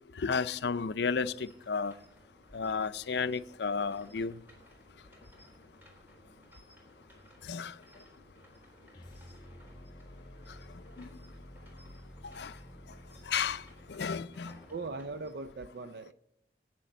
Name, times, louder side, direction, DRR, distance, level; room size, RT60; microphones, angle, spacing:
voice 1, 0.2-1.9 2.5-4.4 7.4-7.7 11.0-11.1 12.2-12.5 13.3-13.6 13.9-14.6, left 5 dB, 80° left, 0.5 m, -32 dB
sound 1, 0.6-15.3, equal, 10° right, 3.6 m, -58 dB
sound 2, 8.9-15.1, equal, 25° left, 2.3 m, -52 dB
voice 2, 14.7-16.1, right 3 dB, 70° right, 0.5 m, -39 dB
14.5 x 9.2 x 7.8 m
head